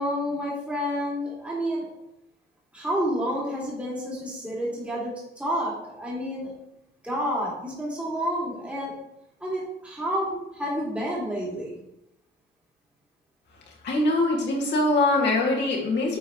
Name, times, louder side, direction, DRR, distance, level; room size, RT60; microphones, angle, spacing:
voice 1, 0.0-1.9 2.7-6.5 7.0-8.9 9.4-11.8, equal, 5° right, -6 dB, 2.4 m, -29 dB
voice 2, 13.8-16.2, left 2 dB, 60° left, -1 dB, 2.0 m, -23 dB
9.1 x 4.4 x 3.1 m, 0.84 s
cardioid pair, 90°, 20 cm